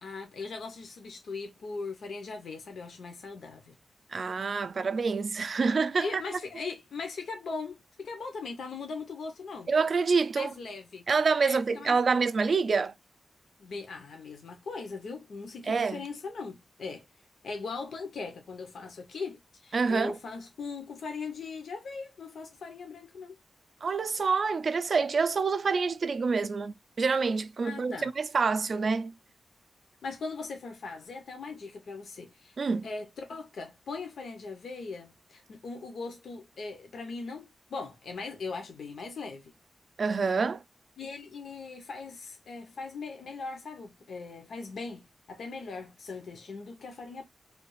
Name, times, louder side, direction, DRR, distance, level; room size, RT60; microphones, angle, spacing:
voice 1, 0.0-3.8 6.0-9.7 10.4-11.0 11.4-12.2 13.6-17.0 17.4-23.3 27.6-28.1 30.0-39.5 41.0-47.2, left 4 dB, 85° left, 0.7 m, -39 dB
voice 2, 4.1-6.2 9.7-10.5 11.1-12.9 15.7-16.0 19.7-20.1 23.8-29.1 32.6-32.9 40.0-40.6, right 4 dB, 50° right, 0.3 m, -27 dB
3.2 x 2.3 x 3.1 m
wide cardioid pair, 155°, 0 cm